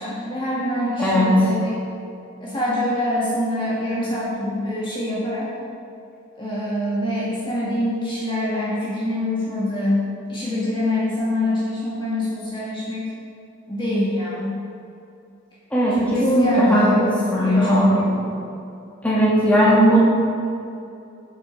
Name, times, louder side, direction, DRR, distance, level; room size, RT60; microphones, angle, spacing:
voice 1, 0.0-1.7 2.4-5.5 6.4-13.0 13.7-14.6 16.0-18.0, left 1 dB, 25° left, -8 dB, 1.7 m, -25 dB
voice 2, 1.0-1.4 15.7-18.1 19.0-20.0, equal, 5° left, -7 dB, 1.9 m, -18 dB
8.5 x 7.5 x 5.1 m, 2.7 s
head